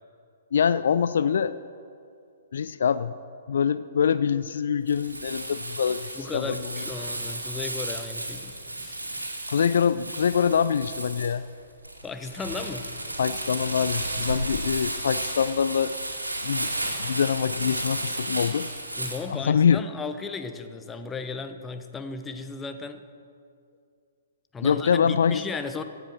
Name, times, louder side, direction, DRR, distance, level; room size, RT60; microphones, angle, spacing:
voice 1, 0.5-1.5 2.5-3.1 3.5-6.6 9.5-11.4 13.2-15.9 16.4-16.7 17.0-18.7 19.3-19.8 24.6-25.4, left 7 dB, 55° left, 14 dB, 0.3 m, -24 dB
Crumpling crinkling, 4.9-19.2, right 1 dB, 80° right, 2.3 m, -33 dB
voice 2, 6.2-9.0 12.0-12.9 19.0-23.0 24.5-25.8, left 4 dB, 10° left, 8 dB, 0.8 m, -35 dB
16.0 x 8.1 x 7.3 m, 2.4 s
figure-of-eight pair, 120°, 0 cm